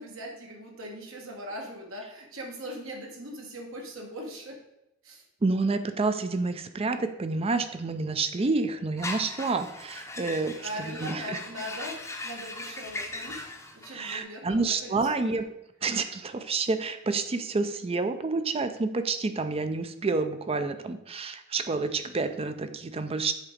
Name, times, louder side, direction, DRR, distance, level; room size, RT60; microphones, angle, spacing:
voice 1, 0.0-4.6 5.0-5.2 10.6-13.4 13.7-15.2, equal, 75° right, 0 dB, 1.6 m, -40 dB
voice 2, 5.4-11.4 13.9-15.5 15.8-23.3, right 3 dB, 30° right, 9 dB, 0.5 m, -29 dB
sound 1, 9.0-14.2, left 2 dB, 15° left, 0.7 m, -39 dB
7.3 x 4.0 x 5.0 m, 0.88 s
head